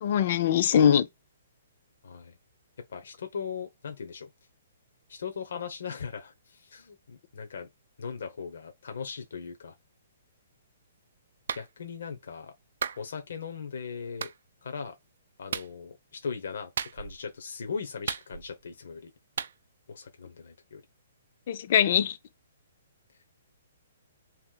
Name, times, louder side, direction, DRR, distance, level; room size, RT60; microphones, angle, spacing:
voice 1, 0.0-1.1 21.5-22.2, left 9 dB, 45° left, 0.4 m, -22 dB
voice 2, 2.0-2.4 2.9-4.3 5.1-7.7 8.0-9.8 11.5-12.5 13.0-14.3 14.6-15.0 15.4-19.1 19.9-20.8, left 6 dB, 70° left, 0.8 m, -39 dB
Clapping, 11.5-11.7 12.8-13.0 14.2-14.4 15.5-15.7 16.8-17.2 18.1-18.6 19.4-19.5, right 7 dB, 65° right, 0.3 m, -34 dB
3.0 x 2.6 x 3.8 m
hypercardioid pair, 165°, 0 cm